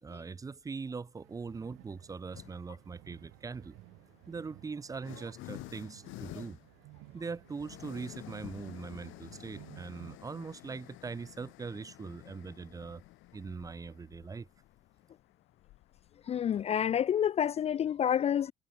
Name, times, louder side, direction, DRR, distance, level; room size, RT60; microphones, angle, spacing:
voice 1, 0.0-3.8 4.3-6.6 7.1-13.0 13.3-14.5, right 4 dB, 15° right, 1.4 m, -41 dB
sound 1, 1.2-10.2, right 22 dB, 85° right, 4.9 m, -56 dB
sound 2, 2.3-2.8 3.8-17.3, left 18 dB, 70° left, 6.0 m, -51 dB
voice 2, 16.2-18.5, left 9 dB, 30° left, 0.7 m, -28 dB
cardioid pair, 170°, 21 cm